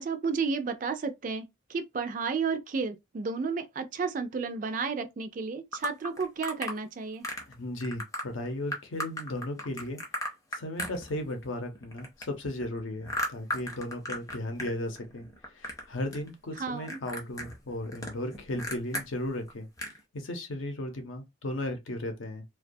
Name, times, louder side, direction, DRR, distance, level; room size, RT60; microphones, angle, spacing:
voice 1, 0.0-7.3 16.6-17.0, right 5 dB, 40° right, 0.3 m, -32 dB
sound 1, 5.7-6.8 7.2-7.5 7.8-8.2 8.7-11.5 11.7-14.7 15.0-15.8 16.1-16.6 16.9-19.1 19.5-19.6 19.8-20.0, left 1 dB, 15° left, 0.5 m, -35 dB
voice 2, 7.5-10.0 10.5-15.3 15.5-19.7 20.1-22.4, left 1 dB, 85° left, 0.7 m, -35 dB
2.2 x 2.2 x 2.6 m
head